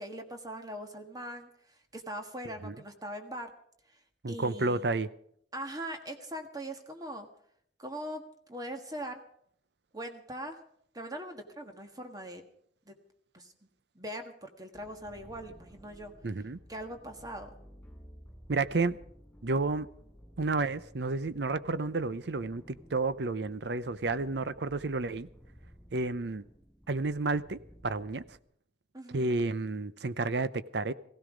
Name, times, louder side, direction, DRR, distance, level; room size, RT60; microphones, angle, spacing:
voice 1, 0.0-3.5 3.9-4.0 4.3-4.9 5.5-7.3 7.8-9.2 9.9-10.6 10.9-12.5 12.9-13.0 13.3-13.5 13.9-16.1 16.7-17.6 28.9-29.4, right 1 dB, 20° right, 1.6 m, -41 dB
voice 2, 4.2-5.1 16.2-16.6 18.5-19.0 19.4-19.9 20.4-25.3 25.9-26.4 26.9-28.2 29.1-30.9, right 3 dB, 65° right, 0.7 m, -31 dB
sound 1, 14.7-28.4, equal, 5° left, 6.8 m, -55 dB
16.0 x 16.0 x 5.1 m
head